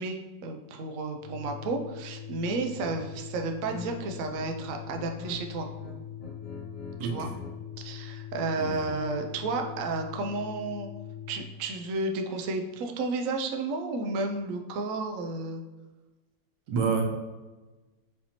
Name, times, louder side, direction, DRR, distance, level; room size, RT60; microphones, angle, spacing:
voice 1, 0.0-5.7 7.0-7.3 7.8-10.9 11.3-15.6, right 3 dB, 85° right, 4 dB, 0.7 m, -32 dB
Organ, 1.2-11.5, left 9 dB, 60° left, 1.0 m, -42 dB
sound 1, 2.7-3.0 3.3-4.5 4.7-5.4 5.7-7.6, left 2 dB, 85° left, 1.4 m, -42 dB
voice 2, 7.0-7.4 8.6-8.8 16.7-17.0, right 5 dB, 65° right, 0 dB, 1.3 m, -28 dB
6.7 x 2.7 x 2.9 m, 1.2 s
omnidirectional pair, 2.0 m